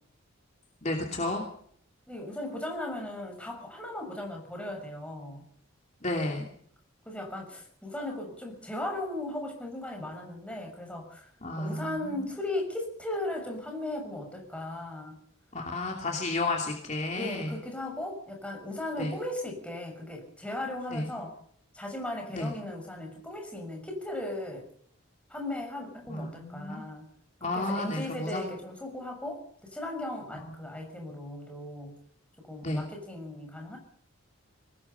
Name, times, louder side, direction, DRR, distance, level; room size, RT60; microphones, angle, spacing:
voice 1, 0.8-1.4 6.0-6.4 11.4-12.2 15.5-17.5 19.0-19.1 20.9-21.1 22.3-22.5 26.1-26.8 27.4-28.5 30.4-30.5 32.6-32.8, left 2 dB, 35° left, 1 dB, 2.8 m, -32 dB
voice 2, 2.1-5.4 7.0-11.3 11.6-15.2 17.1-21.4 21.7-24.7 25.3-27.1 27.4-31.9 32.4-33.8, left 1 dB, 5° left, 2 dB, 6.4 m, -37 dB
24.0 x 19.5 x 5.7 m, 0.62 s
head